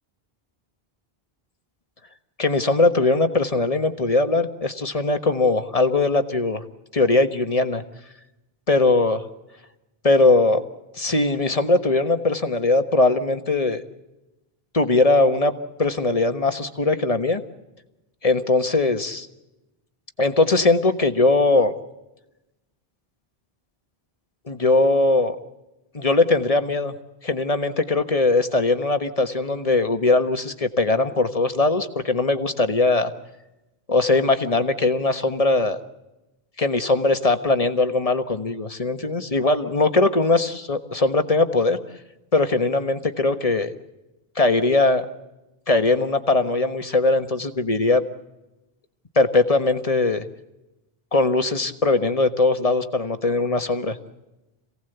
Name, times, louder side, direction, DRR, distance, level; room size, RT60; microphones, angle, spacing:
voice 1, 2.4-6.6 6.9-7.8 8.7-9.2 10.0-10.6 11.0-13.8 14.7-15.5 15.8-17.4 18.2-19.3 20.2-21.7 24.5-25.4 25.9-26.9 27.2-33.1 33.9-35.8 36.6-41.8 42.3-43.7 44.4-45.0 45.7-48.0 49.1-50.2 51.1-54.0, left 2 dB, 35° left, 8 dB, 1.4 m, -20 dB
27.5 x 17.5 x 8.0 m, 0.98 s
omnidirectional pair, 1.0 m